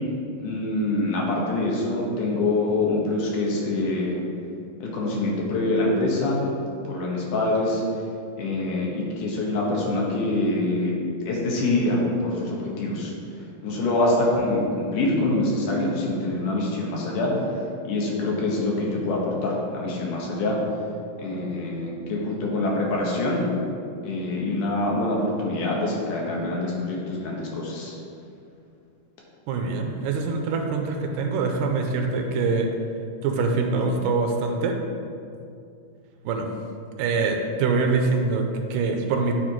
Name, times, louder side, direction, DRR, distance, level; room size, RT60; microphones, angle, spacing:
voice 1, 0.4-4.2 4.8-6.4 6.7-7.8 8.4-10.9 11.3-13.1 13.6-17.5 17.8-20.6 21.2-23.4 24.0-27.9, left 2 dB, 70° left, -3 dB, 2.5 m, -25 dB
voice 2, 29.5-32.7 33.2-34.8 36.2-36.5 37.0-39.4, right 4 dB, 85° right, 3 dB, 2.3 m, -24 dB
9.4 x 4.1 x 4.5 m, 2.5 s
omnidirectional pair, 3.9 m